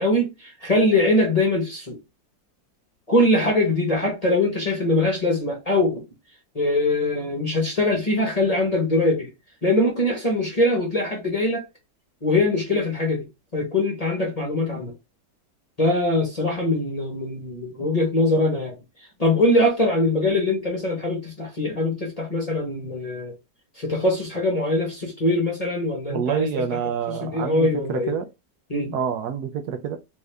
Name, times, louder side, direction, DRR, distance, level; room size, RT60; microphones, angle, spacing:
voice 1, 0.0-2.0 3.1-6.0 6.5-9.3 9.6-11.6 12.2-13.3 13.5-14.9 15.8-18.8 19.2-23.3 23.8-26.5 27.1-28.1 28.7-29.0, left 2 dB, 30° left, 1.0 m, -22 dB
voice 2, 26.1-28.3 28.9-30.0, right 8 dB, 75° right, 1.2 m, -27 dB
3.5 x 2.7 x 3.3 m
omnidirectional pair, 1.8 m